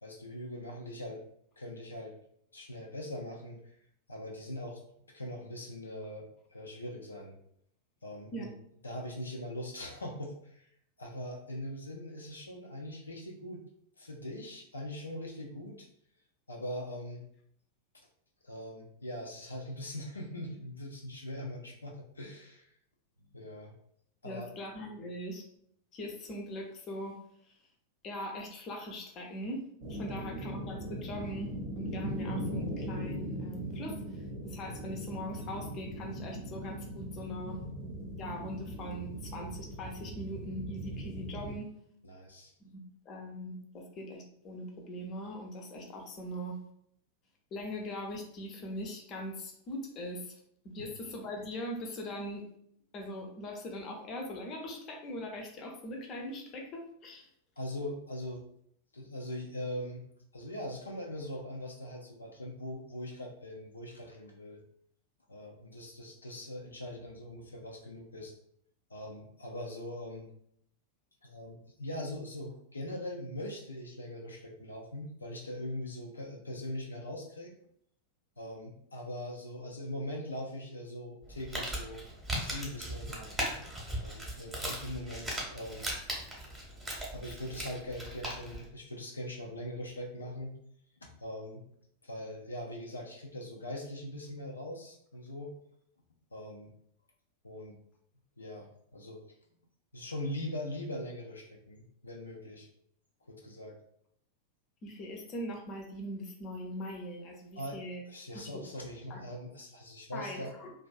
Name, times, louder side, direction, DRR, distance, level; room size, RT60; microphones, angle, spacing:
voice 1, 0.0-1.2 1.6-2.1 2.5-3.6 4.1-4.8 5.1-7.3 8.0-8.5 8.8-10.7 11.0-13.6 14.0-15.9 16.5-17.3 18.4-22.7 23.3-23.7 24.2-24.5 42.0-42.5 50.8-50.9 57.6-58.4 58.9-60.0 60.3-64.6 65.3-68.3 68.9-70.3 71.2-77.5 78.4-82.0 82.3-83.4 84.0-85.9 87.1-90.6 91.0-91.7 92.0-95.5 96.3-96.7 97.4-97.7 98.4-99.2 99.9-102.7 103.3-103.8 107.6-107.8 108.0-110.5, left 1 dB, 80° left, 0 dB, 0.4 m, -41 dB
voice 2, 24.2-25.5 25.9-27.2 27.5-27.6 28.0-29.6 29.9-37.6 38.2-41.8 42.7-46.6 47.5-52.5 52.9-57.3 104.8-108.0 108.3-108.6 109.1-109.2 110.1-110.7, equal, 35° left, 1 dB, 0.6 m, -41 dB
sound 1, 29.8-41.5, right 1 dB, 45° right, 0.6 m, -39 dB
Crumpling crinkling, 81.2-88.6, right 1 dB, 10° right, 0.8 m, -38 dB
2.5 x 2.3 x 2.4 m, 0.70 s
figure-of-eight pair, 90°, 0 cm